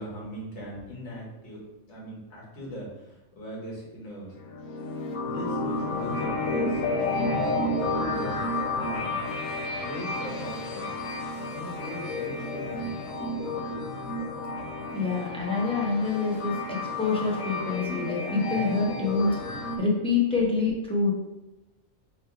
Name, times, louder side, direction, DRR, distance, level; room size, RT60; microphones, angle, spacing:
voice 1, 0.0-4.4 5.2-7.5 7.9-9.2 9.8-13.3, equal, 55° left, -5 dB, 1.6 m, -40 dB
sound 1, 4.4-19.8, left 2 dB, 80° left, 1.1 m, -31 dB
voice 2, 14.9-21.1, left 4 dB, 5° left, -3 dB, 0.5 m, -27 dB
3.3 x 3.1 x 4.6 m, 1.0 s
omnidirectional pair, 1.4 m